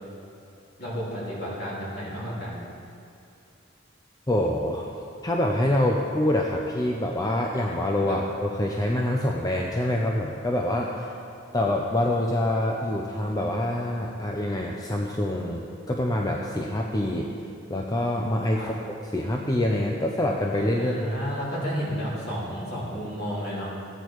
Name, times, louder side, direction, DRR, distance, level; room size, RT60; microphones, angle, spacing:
voice 1, 0.8-2.7 8.1-8.2 18.6-18.7 20.8-23.7, equal, 55° left, -7 dB, 3.2 m, -31 dB
voice 2, 4.3-4.9 5.2-11.1 11.5-17.3 17.7-18.7 19.1-21.2, left 1 dB, 20° left, 0 dB, 0.6 m, -26 dB
14.5 x 9.1 x 4.6 m, 2.5 s
head